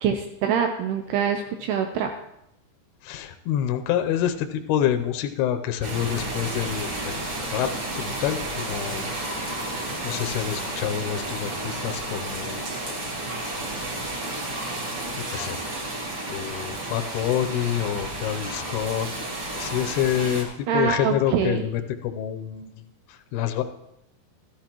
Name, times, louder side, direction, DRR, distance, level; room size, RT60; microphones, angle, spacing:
voice 1, 0.0-2.1 20.7-21.6, right 7 dB, 80° right, 4 dB, 2.6 m, -24 dB
voice 2, 3.0-7.7 8.0-9.1 10.0-13.0 14.5-14.8 15.3-15.6 16.3-22.8 23.1-23.6, left 10 dB, 80° left, 6 dB, 2.5 m, -27 dB
sound 1, 5.8-20.4, right 1 dB, 40° right, 2.0 m, -32 dB
14.0 x 13.0 x 3.0 m, 0.80 s
omnidirectional pair, 4.9 m